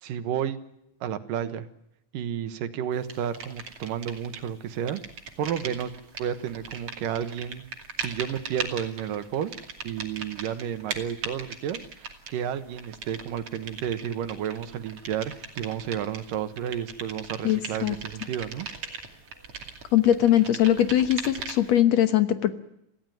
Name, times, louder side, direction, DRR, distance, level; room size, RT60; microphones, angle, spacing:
voice 1, 0.0-0.6 1.0-1.7 2.1-5.0 5.4-5.9 6.2-7.6 8.0-9.5 9.8-18.7, right 9 dB, 80° right, 11 dB, 2.9 m, -31 dB
sound 1, 3.1-4.5 4.7-21.8, right 5 dB, 45° right, 3.3 m, -39 dB
voice 2, 17.4-18.0 19.9-22.5, left 11 dB, 60° left, 10 dB, 2.1 m, -21 dB
27.0 x 16.0 x 9.3 m, 0.80 s
omnidirectional pair, 3.8 m